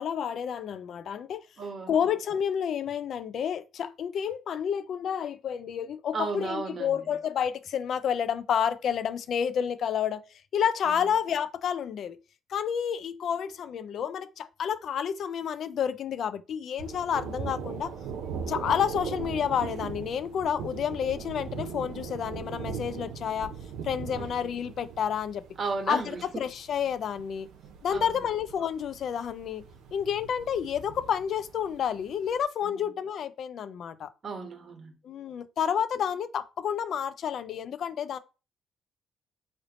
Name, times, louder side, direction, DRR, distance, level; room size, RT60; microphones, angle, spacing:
voice 1, 0.0-1.4 1.9-10.2 10.5-12.2 12.5-17.9 18.5-23.5 23.8-25.4 25.9-27.5 27.8-29.6 29.9-34.1 35.0-38.2, left 8 dB, 65° left, 0.4 m, -30 dB
voice 2, 1.6-1.9 6.1-7.0 24.2-24.6 25.6-26.4 27.9-28.1 32.6-32.8 34.2-34.9, right 4 dB, 50° right, 1.2 m, -34 dB
Thunder, 16.8-32.3, right 6 dB, 90° right, 0.6 m, -40 dB
3.4 x 2.6 x 4.0 m
cardioid pair, 90°, 0 cm